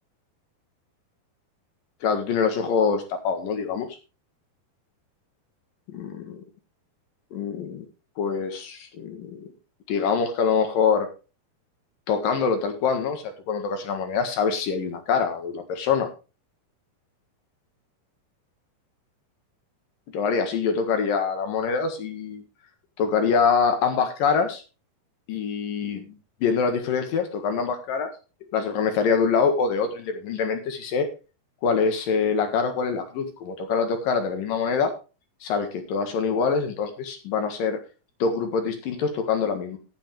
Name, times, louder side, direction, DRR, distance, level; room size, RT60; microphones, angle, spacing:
voice 1, 2.0-3.9 5.9-6.3 7.3-7.9 8.2-9.5 9.9-11.1 12.1-16.1 20.1-22.4 23.0-24.6 25.3-26.1 26.4-28.1 28.5-31.1 31.6-34.9 35.4-37.8 38.2-39.8, left 5 dB, 65° left, 6 dB, 3.2 m, -25 dB
12.0 x 9.9 x 3.3 m, 0.32 s
omnidirectional pair, 4.5 m